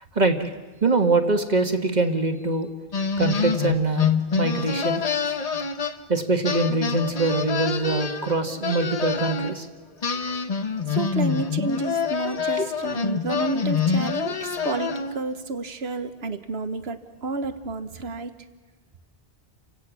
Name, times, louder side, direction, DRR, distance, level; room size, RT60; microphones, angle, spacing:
voice 1, 0.1-0.5 0.8-2.7 3.2-4.1 4.4-5.3 6.1-9.7 10.0-10.4 12.5-12.7, right 3 dB, 45° right, 5 dB, 1.5 m, -24 dB
sound 1, 2.9-6.2 6.4-9.5 10.0-15.3, left 6 dB, 40° left, 0.9 m, -26 dB
voice 2, 10.9-18.3, right 3 dB, 85° right, 9 dB, 1.4 m, -30 dB
29.5 x 17.0 x 6.2 m, 1.2 s
omnidirectional pair, 1.0 m